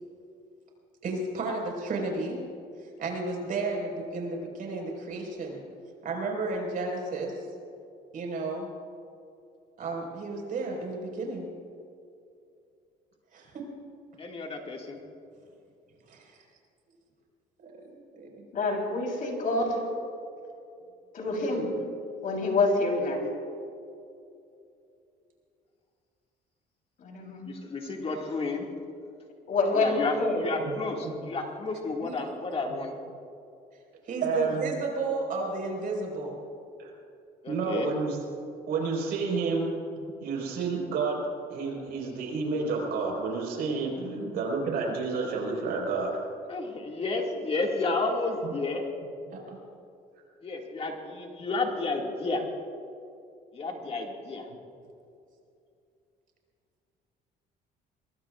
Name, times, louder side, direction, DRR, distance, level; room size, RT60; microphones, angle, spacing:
voice 1, 1.0-2.4 2.8-5.6 6.0-7.3 8.1-8.7 9.8-11.5 13.3-13.7 16.1-16.4 17.6-18.4 21.2-21.4 32.0-32.2 34.0-36.4 40.0-40.1 44.1-44.6 49.3-49.6, right 3 dB, 55° right, 0 dB, 5.1 m, -33 dB
voice 2, 14.2-15.0 27.4-28.7 29.7-32.9 37.4-37.9 46.5-48.8 50.4-52.5 53.5-54.5, left 3 dB, 35° left, 1 dB, 2.2 m, -31 dB
voice 3, 18.5-19.8 21.1-21.7 22.2-23.2 27.0-27.4 29.5-30.4 44.0-44.3, left 3 dB, 55° left, 1 dB, 3.9 m, -27 dB
voice 4, 34.2-34.7 36.8-36.9 37.5-38.2 38.7-39.7 40.2-46.3 48.4-48.5, right 4 dB, 70° right, 0 dB, 4.8 m, -30 dB
23.0 x 22.5 x 2.5 m, 2.6 s
cardioid pair, 110°, 17 cm